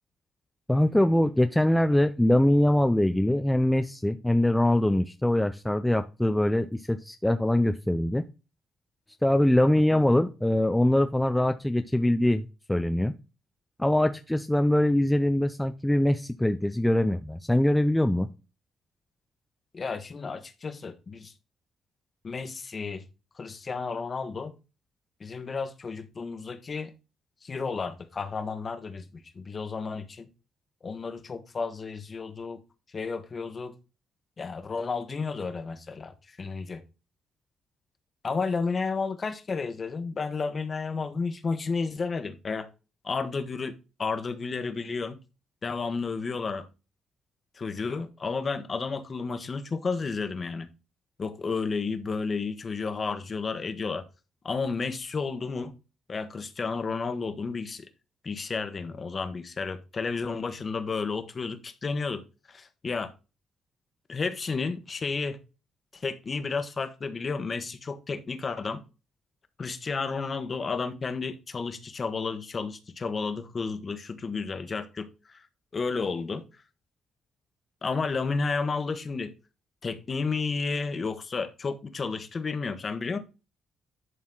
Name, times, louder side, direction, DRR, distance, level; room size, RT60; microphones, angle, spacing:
voice 1, 0.7-8.2 9.2-13.1 13.8-18.3, left 1 dB, 5° left, 0.5 m, -23 dB
voice 2, 19.7-21.3 22.2-23.0 23.4-24.5 25.2-26.9 27.4-30.3 30.8-32.6 32.9-33.8 34.4-36.8 38.2-42.7 43.0-45.2 45.6-46.6 47.5-50.7 51.2-54.0 54.4-55.7 56.1-57.9 58.2-62.2 62.5-63.1 64.1-65.4 65.9-68.8 69.6-75.4 75.7-76.4 77.8-79.3 79.8-83.2, left 4 dB, 35° left, 1.3 m, -32 dB
11.0 x 4.2 x 3.9 m
cardioid pair, 90°, 0 cm